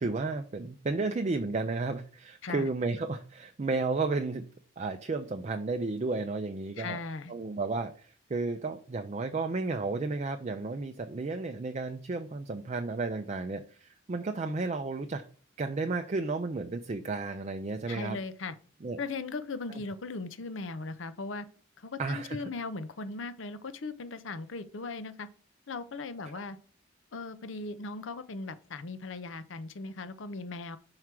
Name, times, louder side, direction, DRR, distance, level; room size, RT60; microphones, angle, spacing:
voice 1, 0.0-4.4 4.8-7.0 7.3-15.2 15.6-18.2 18.8-19.0 22.0-22.4, right 3 dB, 35° right, 7 dB, 0.4 m, -32 dB
voice 2, 6.8-7.3 17.9-18.6 19.0-21.5 21.8-25.3 25.7-26.6 27.1-30.8, left 3 dB, 70° left, 13 dB, 0.7 m, -38 dB
4.8 x 4.6 x 5.9 m, 0.43 s
head